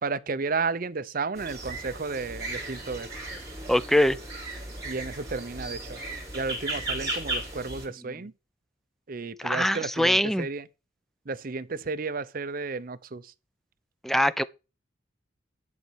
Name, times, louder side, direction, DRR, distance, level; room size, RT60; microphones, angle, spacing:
voice 1, 0.0-3.1 4.8-6.0 6.3-8.3 9.1-10.6 11.3-13.2, right 4 dB, 45° right, 0.6 m, -32 dB
sound 1, 1.4-7.9, right 1 dB, 15° right, 3.3 m, -36 dB
voice 2, 3.7-4.2 9.4-10.5 14.0-14.4, left 1 dB, ahead, 0.4 m, -23 dB
11.0 x 4.2 x 6.2 m
head